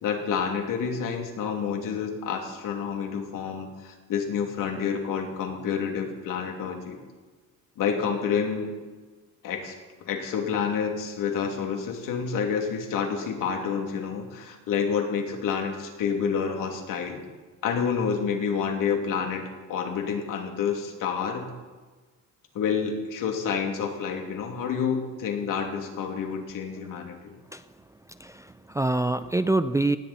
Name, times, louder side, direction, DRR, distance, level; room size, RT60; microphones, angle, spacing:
voice 1, 0.0-7.0 7.8-8.7 9.4-9.8 10.1-17.2 17.6-21.5 22.5-27.4, left 6 dB, 75° left, 3 dB, 2.9 m, -29 dB
voice 2, 28.1-30.0, right 2 dB, 10° right, 11 dB, 0.4 m, -26 dB
19.0 x 16.5 x 4.3 m, 1.3 s
cardioid pair, 135°, 33 cm